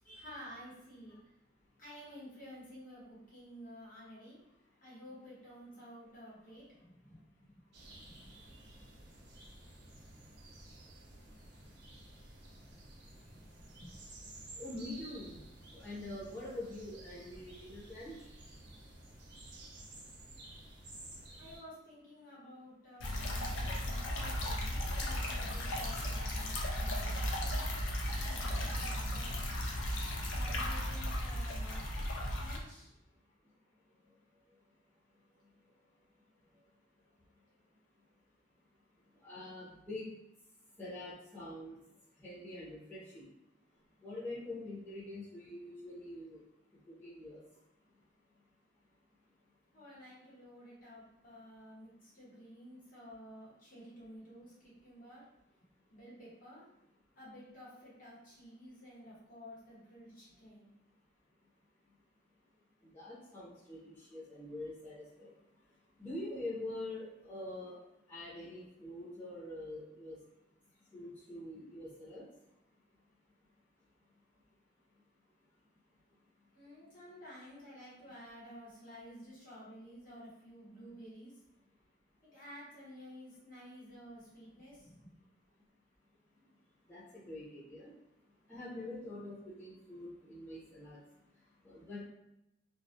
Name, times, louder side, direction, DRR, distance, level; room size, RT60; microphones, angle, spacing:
voice 1, 0.1-1.2 1.8-4.4 4.8-7.5 8.1-8.3 12.6-13.4 13.8-14.4 21.4-27.7 28.2-29.5 30.3-31.9 32.4-32.9 36.4-36.5 49.7-55.3 55.9-56.7 57.2-60.7 76.5-81.3 82.2-85.2, equal, 50° left, -8 dB, 1.0 m, -52 dB
sound 1, 7.7-21.6, right 1 dB, 60° right, 0.6 m, -53 dB
voice 2, 14.6-15.4 15.7-18.1 39.2-40.1 40.8-41.7 42.2-43.3 44.0-46.4 47.0-47.4 62.8-65.3 66.0-67.8 68.1-70.2 70.9-72.2 86.9-87.9 88.5-91.0 91.6-92.0, left 1 dB, 10° left, -11 dB, 0.7 m, -45 dB
sound 2, 23.0-32.6, left 1 dB, 85° left, 0.4 m, -35 dB
2.3 x 2.0 x 2.7 m, 0.87 s
head